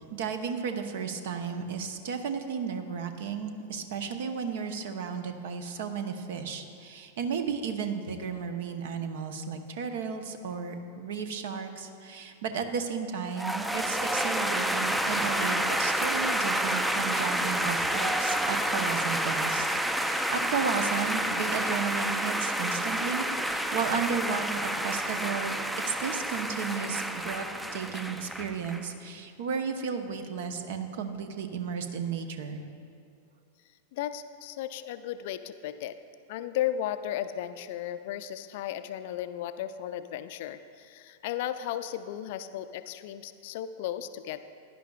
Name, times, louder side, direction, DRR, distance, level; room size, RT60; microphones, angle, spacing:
voice 1, 0.1-19.7 19.9-25.5 25.9-32.6, right 6 dB, 60° right, 7 dB, 0.8 m, -34 dB
sound 1, 13.4-28.9, right 1 dB, 5° right, 0.4 m, -29 dB
voice 2, 33.9-36.0 36.3-44.4, left 11 dB, 55° left, 11 dB, 0.4 m, -35 dB
16.0 x 10.5 x 2.4 m, 2.5 s
figure-of-eight pair, 95°, 0 cm